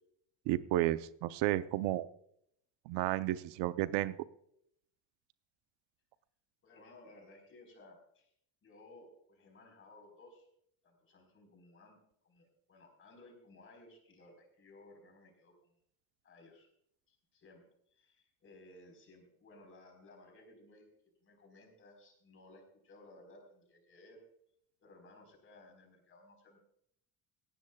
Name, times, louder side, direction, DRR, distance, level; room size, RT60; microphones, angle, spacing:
voice 1, 0.5-2.1 2.9-4.2, right 15 dB, 85° right, 13 dB, 0.8 m, -32 dB
voice 2, 6.6-8.3 8.6-10.5 10.8-15.7 16.2-16.7 17.1-17.6 17.9-20.9 21.2-24.2 24.8-26.6, left 2 dB, 30° left, 3 dB, 4.4 m, -59 dB
18.5 x 15.5 x 2.3 m, 0.70 s
cardioid pair, 170°, 40 cm